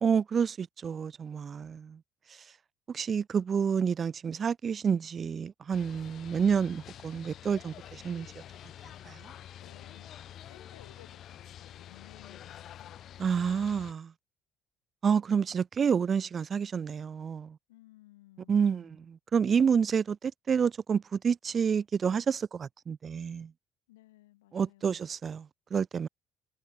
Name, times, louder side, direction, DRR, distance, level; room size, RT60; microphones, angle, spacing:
voice 1, 0.0-2.0 2.3-2.4 2.9-8.3 9.0-9.3 13.2-14.1 15.0-17.6 18.5-23.5 24.5-26.1, right 6 dB, 40° right, 0.7 m, -29 dB
sound 1, 5.7-13.9, left 11 dB, 55° left, 1.6 m, -48 dB
voice 2, 9.6-10.1 10.5-13.0 17.7-19.1 23.9-25.0, left 17 dB, 85° left, 6.0 m, -58 dB
hypercardioid pair, 60°, 0 cm